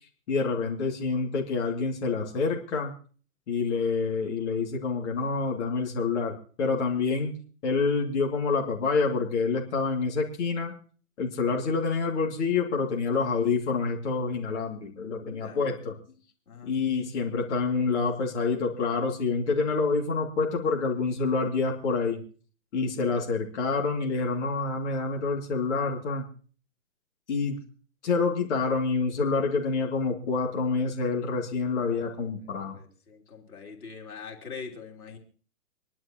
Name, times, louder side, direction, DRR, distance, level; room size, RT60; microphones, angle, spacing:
voice 1, 0.3-2.9 3.5-7.3 7.6-10.7 11.2-16.0 16.7-22.2 22.7-26.3 27.3-27.6 28.0-32.8, left 4 dB, 50° left, 0 dB, 2.6 m, -27 dB
voice 2, 22.9-23.3 31.8-35.2, left 5 dB, 90° left, 2 dB, 3.2 m, -44 dB
26.0 x 11.5 x 3.0 m, 0.41 s
hypercardioid pair, 155°, 43 cm